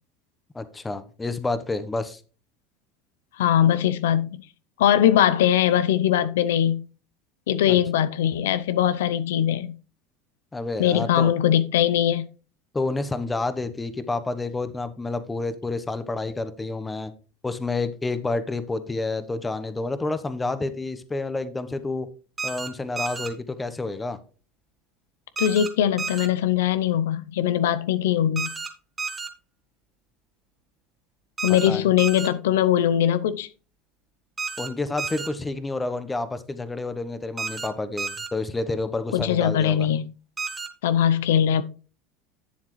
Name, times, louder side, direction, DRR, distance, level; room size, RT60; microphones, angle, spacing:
voice 1, 0.5-2.2 7.7-7.8 10.5-11.3 12.7-17.1 17.4-22.1 22.4-24.2 31.7-31.8 34.6-39.9, left 3 dB, 15° left, 0.9 m, -29 dB
voice 2, 3.4-4.4 4.8-6.9 7.5-9.7 10.8-12.3 25.4-28.5 31.4-33.5 39.1-40.0 40.8-41.6, left 10 dB, 90° left, 0.6 m, -21 dB
sound 1, 22.4-22.7 23.0-23.3 25.4-25.7 26.0-26.3 28.4-28.7 29.0-29.3 31.4-31.7 32.0-32.3 34.4-34.7 35.0-35.3 37.4-37.7 38.0-38.3 40.4-40.7, right 5 dB, 20° right, 1.6 m, -31 dB
11.5 x 7.2 x 3.1 m
supercardioid pair, 120°, 0 cm